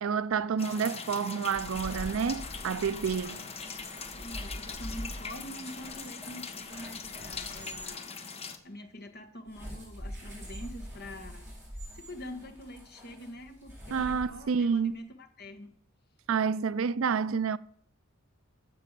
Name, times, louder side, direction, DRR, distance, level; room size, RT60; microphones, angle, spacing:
voice 1, 0.0-3.4 13.9-14.9 16.3-17.6, right 6 dB, 60° right, 0.4 m, -29 dB
sound 1, 0.6-8.6, left 5 dB, 30° left, 1.0 m, -41 dB
sound 2, 1.4-7.9 9.5-14.7, equal, 10° right, 6.4 m, -44 dB
voice 2, 4.1-8.1 8.6-11.5 11.9-15.7, left 1 dB, 45° left, 1.6 m, -45 dB
12.5 x 7.6 x 7.4 m
head